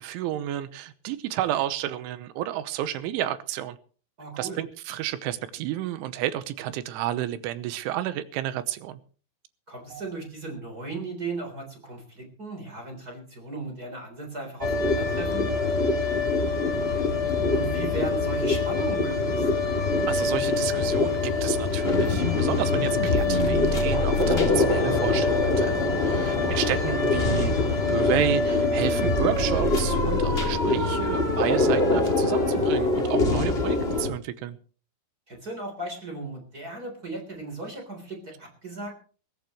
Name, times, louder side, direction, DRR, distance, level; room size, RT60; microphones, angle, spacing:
voice 1, 0.0-3.8 4.4-9.0 9.9-10.0 20.1-25.8 26.0-27.5 27.9-34.6, right 12 dB, 85° right, 3.4 m, -31 dB
voice 2, 4.2-4.6 9.7-15.5 17.5-19.5 26.5-26.7 35.3-38.9, right 2 dB, 20° right, 3.5 m, -36 dB
sound 1, 14.6-34.1, left 3 dB, 50° left, 0.7 m, -24 dB
20.5 x 16.0 x 3.1 m
omnidirectional pair, 5.5 m